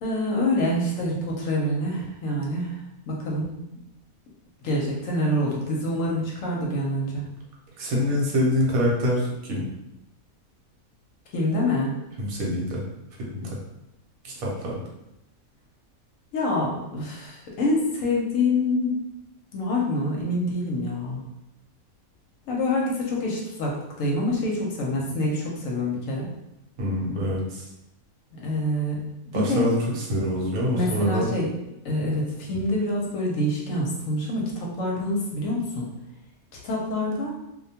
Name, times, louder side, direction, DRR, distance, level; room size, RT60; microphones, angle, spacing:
voice 1, 0.0-2.8 3.1-3.6 4.6-7.2 11.3-11.9 16.3-19.0 19.5-21.2 22.5-26.3 28.4-29.0 29.3-29.7 30.7-31.5 31.8-35.9 36.6-37.3, left 1 dB, 70° left, -2 dB, 0.9 m, -26 dB
voice 2, 7.8-9.7 12.2-12.8 13.3-13.6 14.2-14.8 26.8-27.6 29.3-31.3, equal, 75° right, -3 dB, 1.1 m, -25 dB
2.4 x 2.1 x 2.7 m, 0.89 s
omnidirectional pair, 1.5 m